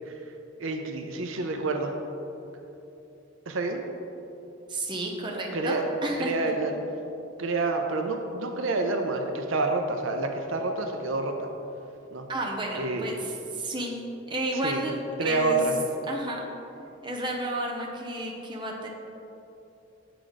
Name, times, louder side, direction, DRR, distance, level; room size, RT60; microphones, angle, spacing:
voice 1, 0.6-2.0 3.5-3.8 5.5-5.8 6.2-6.8 7.4-11.5 12.1-12.2 12.8-13.1 14.6-14.8 15.2-15.8, right 3 dB, 80° right, 4 dB, 0.6 m, -28 dB
voice 2, 4.7-6.3 12.3-14.0 14.3-15.6 16.1-16.5 17.0-18.9, right 1 dB, 25° right, -1 dB, 0.7 m, -32 dB
7.8 x 4.8 x 3.9 m, 2.9 s
head